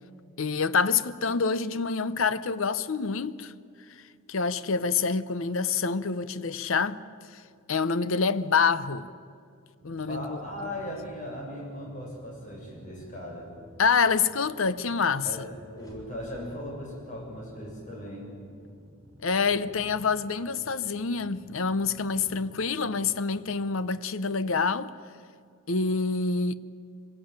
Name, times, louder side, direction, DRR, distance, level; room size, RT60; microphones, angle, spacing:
voice 1, 0.4-3.5 4.3-7.0 7.3-7.4 7.7-9.1 9.8-10.4 13.8-15.3 19.2-24.9 25.7-26.5, left 5 dB, 65° left, 0.8 m, -26 dB
sound 1, 9.8-23.6, right 1 dB, 55° right, 2.3 m, -53 dB
voice 2, 10.1-13.5 15.2-18.3, equal, 35° left, 7.4 m, -38 dB
sound 2, 15.7-17.8, equal, 20° left, 4.2 m, -53 dB
25.0 x 17.5 x 9.0 m
head